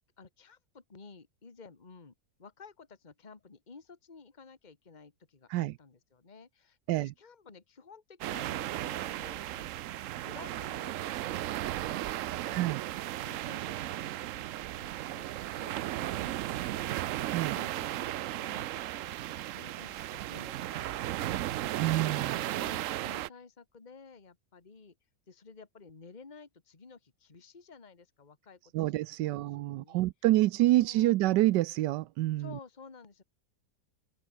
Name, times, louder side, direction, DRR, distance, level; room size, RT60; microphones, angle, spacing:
voice 1, 0.2-2.1 2.4-12.7 13.2-15.3 15.5-24.9 25.3-28.7 29.2-30.1 30.8-31.1 32.4-33.2, left 5 dB, 25° left, 1.8 m, -53 dB
sound 1, 8.2-23.3, right 14 dB, 70° right, 0.7 m, -35 dB
voice 2, 12.4-12.8 17.3-17.6 21.8-22.3 28.7-32.5, right 16 dB, 90° right, 1.2 m, -27 dB
open air
omnidirectional pair, 1.8 m